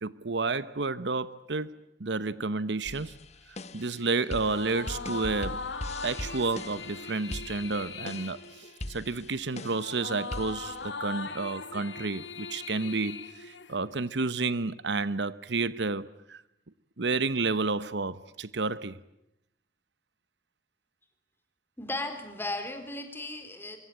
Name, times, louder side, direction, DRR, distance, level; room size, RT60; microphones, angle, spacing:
voice 1, 0.0-3.1 3.7-5.6 6.0-16.4 17.0-19.0, right 3 dB, 70° right, 1.0 m, -31 dB
sound 1, 2.9-10.9, left 1 dB, 40° left, 1.3 m, -41 dB
sound 2, 4.3-14.0, left 4 dB, 75° left, 2.2 m, -40 dB
voice 2, 21.8-23.8, left 2 dB, 15° left, 4.3 m, -36 dB
25.0 x 23.5 x 8.8 m
head